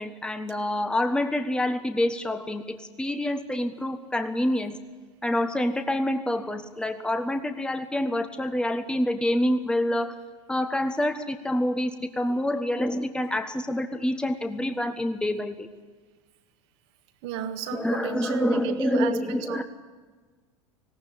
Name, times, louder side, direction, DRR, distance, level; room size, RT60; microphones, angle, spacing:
voice 1, 0.0-4.8 5.2-10.1 10.5-15.7 17.7-19.6, left 1 dB, 5° left, 8 dB, 1.3 m, -27 dB
voice 2, 17.2-19.6, right 9 dB, 60° right, 8 dB, 1.9 m, -33 dB
19.0 x 17.5 x 9.9 m, 1.4 s
figure-of-eight pair, 75°, 16 cm